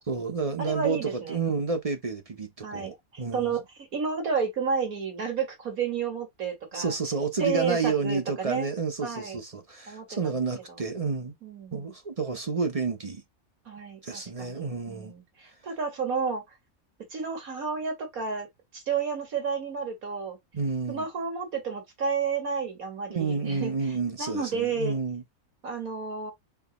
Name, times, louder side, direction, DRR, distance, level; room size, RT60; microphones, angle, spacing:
voice 1, 0.1-3.6 6.7-11.3 11.7-13.2 14.0-15.1 20.5-21.1 23.1-25.2, right 4 dB, 35° right, 0.6 m, -30 dB
voice 2, 0.6-1.4 2.6-3.6 3.9-6.9 7.4-8.7 9.0-9.4 9.9-10.4 10.7-10.8 11.4-11.9 13.7-16.4 17.1-18.5 18.7-20.4 20.9-23.7 24.2-25.0 25.6-26.3, right 5 dB, 85° right, 2.4 m, -31 dB
4.6 x 2.8 x 4.1 m
omnidirectional pair, 1.5 m